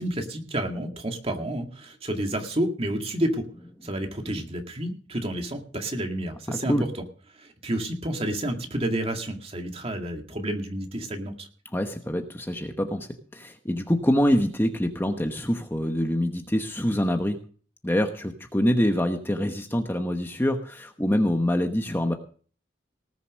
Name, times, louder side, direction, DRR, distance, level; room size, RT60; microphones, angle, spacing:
voice 1, 0.0-3.5 3.8-6.9 7.4-11.5, right 1 dB, 30° right, 3 dB, 2.1 m, -30 dB
voice 2, 11.7-17.4 17.8-22.1, equal, 10° left, 5 dB, 1.0 m, -25 dB
19.0 x 6.9 x 6.2 m, 0.42 s
head